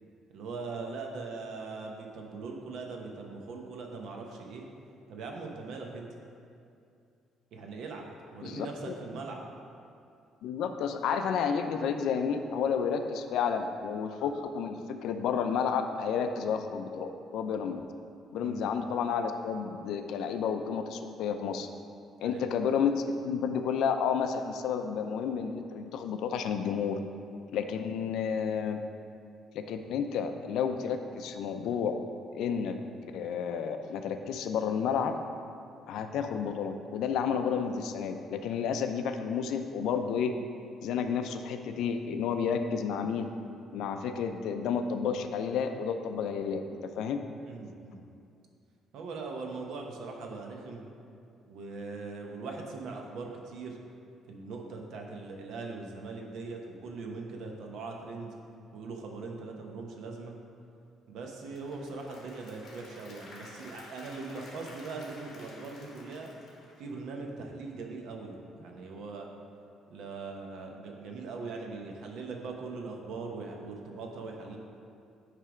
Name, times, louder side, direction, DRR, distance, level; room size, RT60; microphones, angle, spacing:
voice 1, 0.3-4.7 5.1-6.1 7.5-8.0 8.3-9.4 18.4-18.7 22.2-22.5 47.4-48.1 48.9-50.8 51.5-53.8 54.3-58.3 58.7-60.3 61.1-66.3 66.8-69.3 69.9-74.6, right 3 dB, 60° right, 1 dB, 0.9 m, -41 dB
voice 2, 8.4-8.9 10.4-17.8 18.3-21.7 22.2-27.0 27.5-28.8 29.5-32.0 32.3-32.8 33.0-35.1 35.9-40.3 40.8-43.3 43.7-46.6 47.0-47.2, left 6 dB, 65° left, 7 dB, 0.4 m, -31 dB
Applause / Crowd, 61.2-67.3, left 2 dB, 45° left, 1.5 m, -51 dB
9.2 x 3.3 x 4.9 m, 2.5 s
cardioid pair, 175°, 0 cm